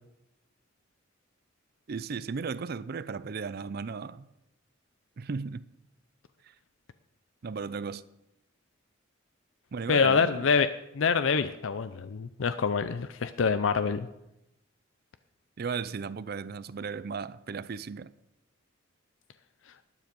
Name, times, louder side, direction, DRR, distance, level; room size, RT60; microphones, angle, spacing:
voice 1, 1.9-4.3 5.2-5.6 7.4-8.0 9.7-10.4 15.6-18.1, right 5 dB, 50° right, 0.4 m, -35 dB
voice 2, 9.9-10.7 10.9-14.1, left 5 dB, 70° left, 0.5 m, -26 dB
12.5 x 9.3 x 5.2 m
head